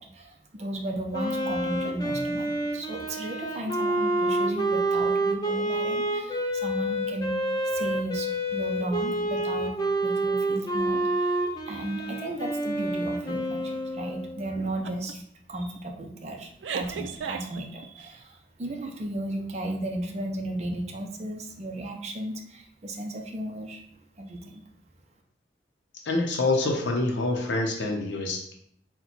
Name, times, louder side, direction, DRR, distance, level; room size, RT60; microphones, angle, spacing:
voice 1, 0.0-7.3 7.7-9.7 10.0-11.4 11.6-15.2 15.5-23.8 24.2-24.6, right 1 dB, 35° right, 3 dB, 0.6 m, -34 dB
Wind instrument woodwind instrument, 1.1-14.5, right 1 dB, 20° left, 0.5 m, -28 dB
sound 1, 14.8-15.1 15.5-15.8 16.6-18.1, right 6 dB, 90° right, 0.4 m, -34 dB
voice 2, 26.1-28.5, left 2 dB, 90° left, 1 dB, 0.6 m, -26 dB
4.2 x 2.2 x 4.2 m, 0.69 s
head